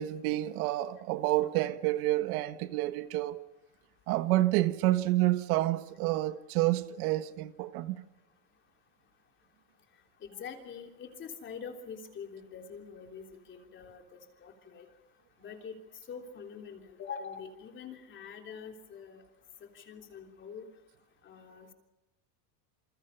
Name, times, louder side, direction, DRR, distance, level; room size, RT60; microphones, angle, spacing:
voice 1, 0.0-3.5 4.1-8.0, right 16 dB, 60° right, 1.5 m, -29 dB
voice 2, 10.2-14.9 15.4-15.7 16.1-19.2 19.7-20.7 21.2-21.7, left 6 dB, 25° left, 3.4 m, -45 dB
29.0 x 28.0 x 5.7 m
cardioid pair, 175°, 48 cm